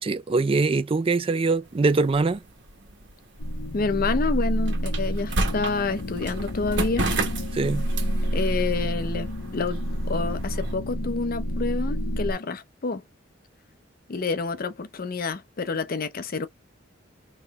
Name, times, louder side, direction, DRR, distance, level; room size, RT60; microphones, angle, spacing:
voice 1, 0.0-2.4 7.5-7.9, right 3 dB, 30° right, 0.4 m, -23 dB
sound 1, 1.7-10.7, right 2 dB, 65° right, 1.4 m, -33 dB
sound 2, 3.4-12.3, equal, 90° left, 0.8 m, -29 dB
voice 2, 3.7-7.1 8.3-9.8 10.1-13.0 14.1-16.5, left 4 dB, 50° left, 0.6 m, -28 dB
3.1 x 3.0 x 3.5 m
head